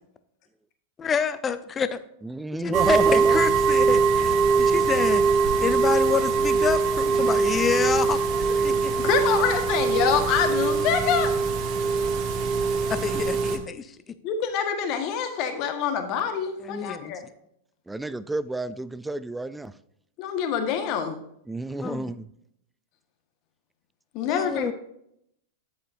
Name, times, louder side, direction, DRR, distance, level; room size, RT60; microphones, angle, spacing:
voice 1, 1.0-2.0 2.6-5.2 5.6-8.2 8.5-9.1 12.9-14.1 16.6-17.2 21.8-22.1 24.3-24.7, left 6 dB, 25° left, 12 dB, 0.7 m, -28 dB
voice 2, 2.2-3.4 17.9-19.7 21.5-22.2, right 2 dB, 10° right, 16 dB, 0.4 m, -29 dB
sound 1, 2.7-13.6, right 5 dB, 45° right, 1.1 m, -22 dB
voice 3, 9.0-11.3 14.2-17.2 20.2-21.2 24.1-24.7, left 7 dB, 45° left, 6 dB, 1.4 m, -26 dB
9.6 x 7.9 x 2.7 m, 0.74 s
hypercardioid pair, 100°, 0 cm